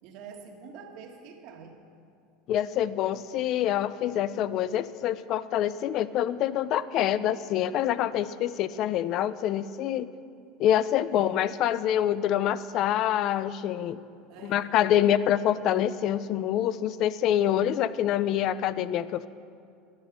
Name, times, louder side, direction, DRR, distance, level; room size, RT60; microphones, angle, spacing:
voice 1, 0.0-1.8 11.1-11.3 14.3-14.7, right 6 dB, 55° right, 3 dB, 1.4 m, -46 dB
voice 2, 2.5-10.1 10.6-14.0 14.4-19.3, left 11 dB, 45° left, 16 dB, 0.4 m, -26 dB
11.0 x 9.9 x 6.6 m, 2.3 s
supercardioid pair, 155°, 0 cm